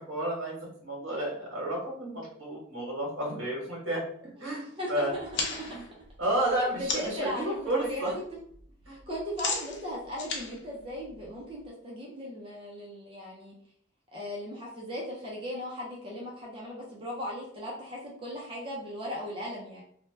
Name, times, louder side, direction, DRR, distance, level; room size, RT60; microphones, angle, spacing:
voice 1, 0.1-5.1 5.7-5.8 6.2-8.1 8.9-9.0, right 1 dB, 65° right, -3 dB, 1.3 m, -32 dB
voice 2, 4.4-5.8 6.3-8.1 8.9-13.5 14.1-19.8, equal, 25° right, -4 dB, 0.5 m, -38 dB
sound 1, 5.2-7.3 7.7-8.1 8.4-11.6, left 4 dB, 60° left, 0.6 m, -36 dB
2.7 x 2.1 x 3.2 m, 0.63 s
head